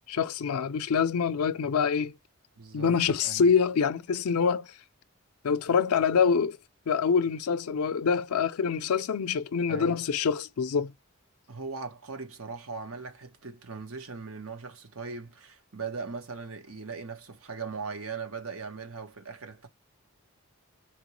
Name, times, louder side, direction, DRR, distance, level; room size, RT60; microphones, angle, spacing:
voice 1, 0.1-2.1 2.7-4.7 5.4-6.6 6.9-10.9, left 6 dB, 85° left, 0.4 m, -25 dB
voice 2, 2.6-2.9 3.2-3.5 9.7-10.0 11.5-19.7, right 4 dB, 70° right, 1.1 m, -39 dB
4.4 x 2.9 x 3.0 m
head